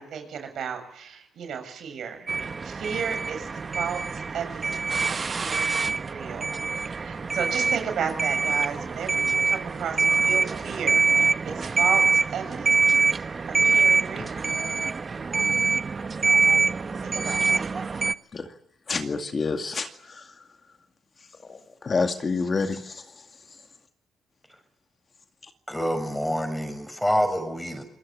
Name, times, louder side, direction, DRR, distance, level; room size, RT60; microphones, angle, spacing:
voice 1, 0.0-3.5 3.8-13.0 13.6-14.4 17.0-17.7, right 7 dB, 70° right, 6 dB, 6.9 m, -34 dB
sound 1, 2.3-18.1, right 4 dB, 35° right, 1.1 m, -24 dB
voice 2, 18.9-20.2 21.4-23.0, left 4 dB, 35° left, 6 dB, 2.2 m, -28 dB
voice 3, 25.7-27.8, equal, 5° left, 8 dB, 7.0 m, -26 dB
26.5 x 20.0 x 8.7 m, 0.74 s
cardioid pair, 90°, 0 cm